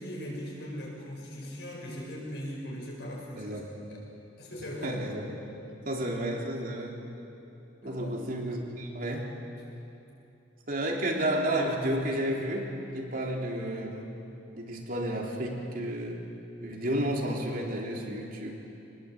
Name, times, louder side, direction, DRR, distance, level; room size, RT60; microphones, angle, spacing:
voice 1, 0.0-3.6 3.9-4.0 4.4-5.0 7.8-8.3, equal, 70° left, -3 dB, 7.6 m, -39 dB
voice 2, 3.3-4.1 4.8-7.0 7.8-9.3 10.7-14.1 14.5-16.2 16.6-18.6, right 1 dB, 50° right, 0 dB, 3.3 m, -32 dB
24.0 x 20.0 x 8.6 m, 2.8 s
head